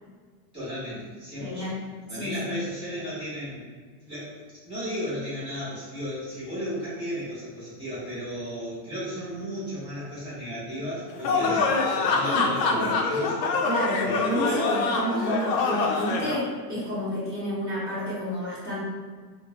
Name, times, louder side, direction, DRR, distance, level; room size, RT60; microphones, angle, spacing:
voice 1, 0.5-1.8 2.1-3.6 4.0-4.4 4.6-13.4 14.0-14.5, equal, 10° right, -12 dB, 0.8 m, -34 dB
voice 2, 1.4-1.8 2.1-2.6 11.4-11.6 12.2-12.9 13.6-18.8, equal, 20° left, -14 dB, 0.6 m, -30 dB
sound 1, 11.2-16.4, left 4 dB, 75° left, 0.6 m, -25 dB
3.0 x 2.1 x 2.8 m, 1.5 s
supercardioid pair, 180°, 50 cm